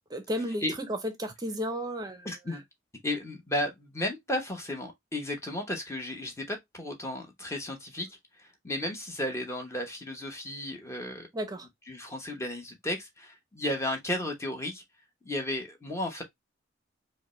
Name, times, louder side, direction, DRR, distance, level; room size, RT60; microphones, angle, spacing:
voice 1, 0.1-2.6 11.3-11.7, equal, 20° right, 0.6 m, -34 dB
voice 2, 2.2-2.6 3.0-8.1 8.4-11.3 11.9-14.8 15.2-16.2, left 1 dB, 15° left, 1.0 m, -34 dB
4.9 x 2.1 x 3.0 m
head